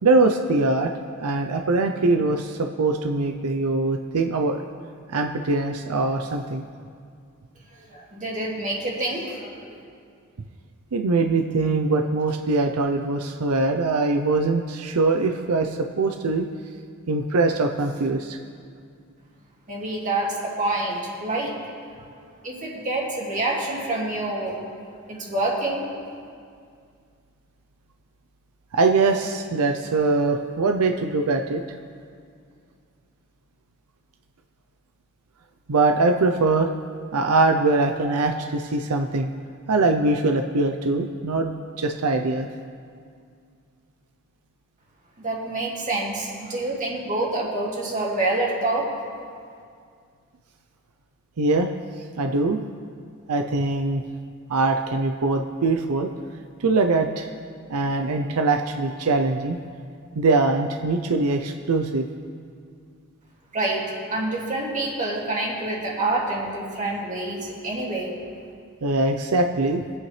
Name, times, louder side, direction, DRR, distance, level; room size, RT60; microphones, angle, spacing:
voice 1, 0.0-0.9 1.2-4.6 5.1-6.6 10.9-16.5 17.1-18.4 28.7-31.6 35.7-36.7 37.1-39.3 39.7-42.5 51.4-51.7 52.2-52.6 53.3-54.0 54.5-56.1 56.6-57.3 57.7-59.6 60.2-62.1 68.8-69.8, right 3 dB, 85° right, 5 dB, 0.6 m, -22 dB
voice 2, 7.8-9.8 19.7-21.6 22.4-24.6 25.1-25.9 45.2-48.9 63.5-68.1, right 2 dB, 35° right, -3 dB, 2.3 m, -27 dB
23.0 x 8.8 x 3.2 m, 2.2 s
head